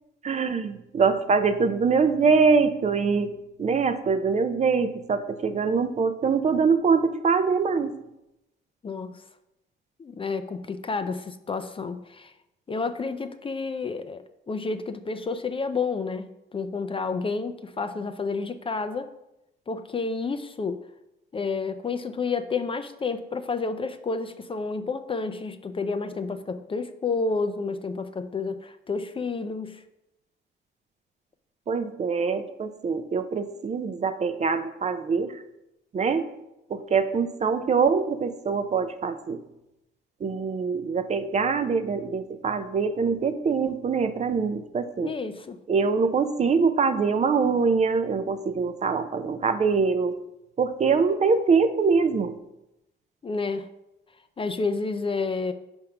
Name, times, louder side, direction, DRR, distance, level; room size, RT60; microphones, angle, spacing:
voice 1, 0.2-7.9 31.7-35.4 35.9-36.3 36.7-39.4 40.2-45.2 45.7-50.2 50.6-52.4, right 5 dB, 35° right, 10 dB, 0.5 m, -24 dB
voice 2, 8.8-9.2 10.0-12.3 12.7-19.1 19.7-20.8 21.3-29.8 45.0-45.6 53.2-53.7 54.4-55.5, left 4 dB, 25° left, 10 dB, 0.4 m, -30 dB
5.2 x 3.5 x 5.7 m, 0.88 s
cardioid pair, 90°, 20 cm